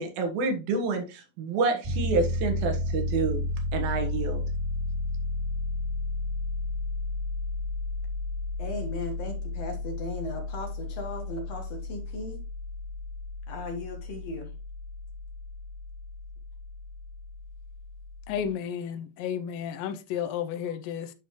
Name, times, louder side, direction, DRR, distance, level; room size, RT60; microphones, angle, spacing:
voice 1, 0.0-3.4 3.7-4.4, right 4 dB, 90° right, 3.2 m, -28 dB
Piano, 1.8-18.5, left 2 dB, 15° right, 2.0 m, -33 dB
voice 2, 8.6-12.4 13.5-14.5, left 2 dB, 60° left, 2.0 m, -37 dB
voice 3, 18.3-21.1, left 8 dB, 80° left, 2.3 m, -32 dB
10.0 x 4.4 x 3.1 m
omnidirectional pair, 4.1 m